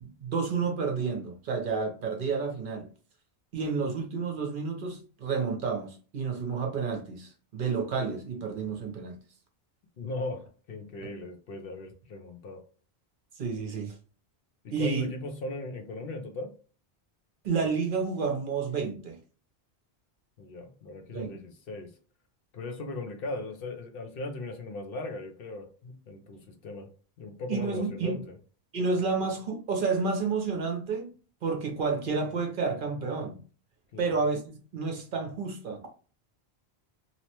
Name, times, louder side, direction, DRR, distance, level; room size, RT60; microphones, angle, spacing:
voice 1, 0.0-2.9 3.5-9.2 11.0-11.1 13.4-13.9 14.7-15.1 17.4-19.2 21.1-21.4 27.5-28.2 28.7-31.1 31.4-33.4 34.0-35.8, right 4 dB, 55° right, 0.7 m, -30 dB
voice 2, 10.0-12.6 14.6-16.5 20.4-21.9 22.5-26.9 27.2-28.3 33.9-34.2, left 2 dB, 65° left, 0.7 m, -38 dB
2.8 x 2.1 x 2.9 m
omnidirectional pair, 1.1 m